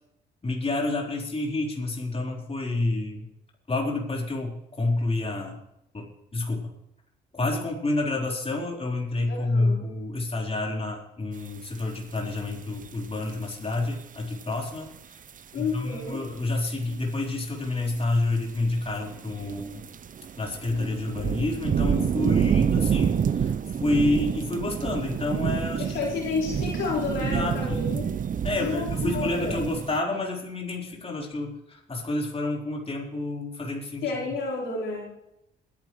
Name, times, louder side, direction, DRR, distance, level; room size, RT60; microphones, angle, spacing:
voice 1, 0.4-3.3 3.7-5.6 5.9-6.7 7.3-14.9 15.5-19.8 20.4-23.5 23.8-26.0 27.2-27.8 28.4-34.0, left 2 dB, 30° left, -2 dB, 4.3 m, -29 dB
voice 2, 9.3-9.9 15.5-16.2 25.8-28.1 28.6-29.7 34.0-35.2, left 4 dB, 80° left, -5 dB, 4.5 m, -31 dB
sound 1, 11.8-11.9 12.4-12.9 13.2-13.8 14.4-14.5 14.7-14.9 15.3-15.4 15.7-15.8 16.5-16.6 16.8-16.9 17.7-30.0, right 7 dB, 45° right, 0.7 m, -28 dB
22.0 x 11.0 x 3.2 m, 0.81 s
supercardioid pair, 55°, 20 cm